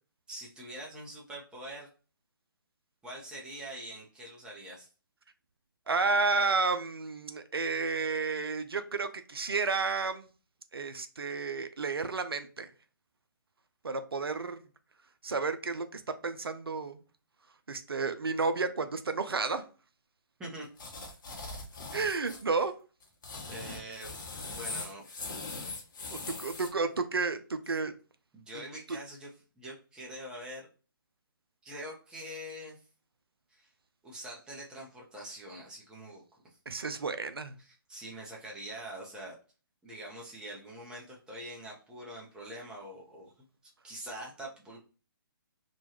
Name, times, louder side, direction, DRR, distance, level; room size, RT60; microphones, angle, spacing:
voice 1, 0.3-1.9 3.0-4.9 20.4-20.7 21.3-21.6 23.5-25.1 28.3-29.3 29.6-30.7 31.6-32.8 33.5-33.7 34.0-36.6 37.6-39.4 39.8-43.3 43.8-44.8, right 1 dB, 5° right, -4 dB, 0.7 m, -44 dB
voice 2, 5.9-10.3 10.7-12.7 13.8-14.6 15.2-17.0 17.7-19.6 21.9-22.7 26.4-27.9 28.5-28.6 28.9-29.0 36.7-37.6, right 4 dB, 90° right, 10 dB, 0.4 m, -31 dB
sound 1, 20.8-22.4 23.0-26.7, left 3 dB, 55° left, 0.9 m, -40 dB
3.0 x 2.3 x 2.8 m, 0.36 s
figure-of-eight pair, 140°, 12 cm